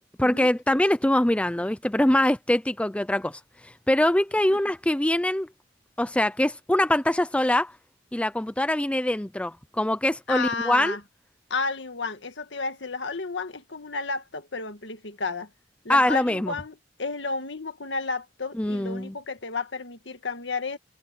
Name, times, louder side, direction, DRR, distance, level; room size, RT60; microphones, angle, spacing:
voice 1, 0.2-3.4 3.9-5.5 6.0-7.7 8.1-11.0 15.9-16.5 18.6-19.1, left 1 dB, 5° left, 0.5 m, -23 dB
voice 2, 10.3-11.0 11.5-15.5 15.8-20.8, left 4 dB, 70° left, 1.7 m, -32 dB
head